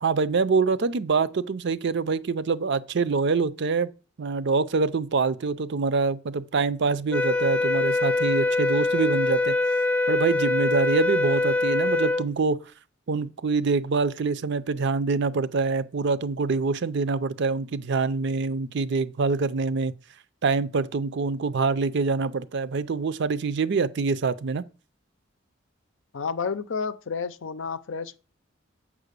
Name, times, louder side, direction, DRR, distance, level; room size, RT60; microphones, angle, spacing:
voice 1, 0.0-3.9 4.2-9.5 10.1-12.6 13.1-19.9 20.4-24.6, right 4 dB, 55° right, 0.5 m, -25 dB
sound 1, 7.1-12.3, left 2 dB, 5° left, 0.3 m, -24 dB
voice 2, 26.1-28.2, left 5 dB, 65° left, 0.6 m, -30 dB
7.3 x 5.0 x 6.7 m
head